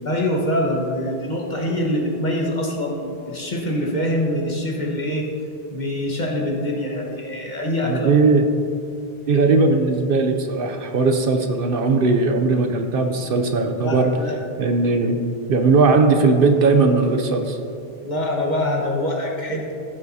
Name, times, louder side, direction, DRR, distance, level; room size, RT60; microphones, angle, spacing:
voice 1, 0.0-5.3 5.7-8.1 13.6-14.3 18.0-19.7, left 1 dB, 45° left, -1 dB, 1.4 m, -24 dB
voice 2, 7.8-8.4 9.3-14.1 14.6-15.2 15.5-17.6, right 3 dB, 65° right, 5 dB, 0.8 m, -18 dB
15.5 x 7.2 x 2.7 m, 2.5 s
omnidirectional pair, 1.1 m